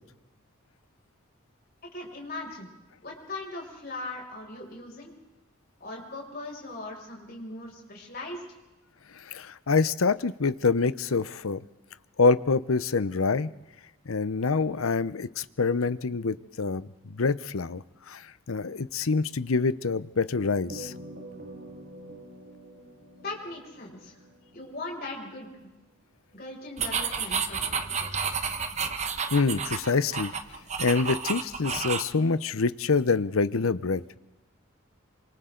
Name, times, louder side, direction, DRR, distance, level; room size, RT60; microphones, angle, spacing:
voice 1, 1.9-2.7 3.0-5.1 5.8-8.4 23.2-24.2 24.5-25.7 26.3-28.1, left 2 dB, 45° left, -1 dB, 6.5 m, -39 dB
voice 2, 9.1-11.6 12.2-13.5 14.1-20.9 29.3-30.3 30.8-34.0, left 4 dB, 80° left, 16 dB, 0.7 m, -26 dB
sound 1, 20.7-25.3, right 1 dB, 50° right, 3.7 m, -46 dB
sound 2, 26.8-32.1, right 6 dB, 30° right, 1.2 m, -30 dB
28.0 x 26.0 x 3.9 m, 1.1 s
head